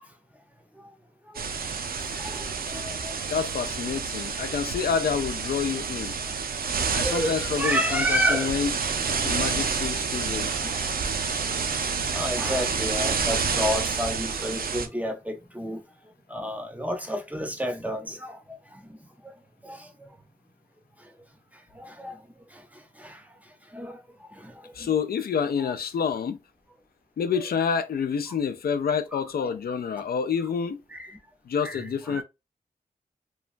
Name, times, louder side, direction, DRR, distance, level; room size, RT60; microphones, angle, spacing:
sound 1, 1.3-14.9, right 5 dB, 70° right, 0.4 m, -29 dB
voice 1, 2.7-3.1 7.0-8.6 10.6-10.7 11.4-11.5 12.1-15.8 16.3-18.4 19.6-19.8 21.8-22.2 23.0-23.2 23.7-24.0 24.4-24.5 24.8-24.9 25.6-25.7 27.4-27.5 29.1-29.5 30.9-31.1 31.6-32.2, equal, 10° right, 0.6 m, -30 dB
voice 2, 3.3-6.1 6.9-8.7 9.2-10.5 24.7-26.4 27.2-30.8 31.5-32.2, left 6 dB, 80° left, 0.4 m, -28 dB
3.1 x 2.2 x 2.4 m
wide cardioid pair, 85°, 16 cm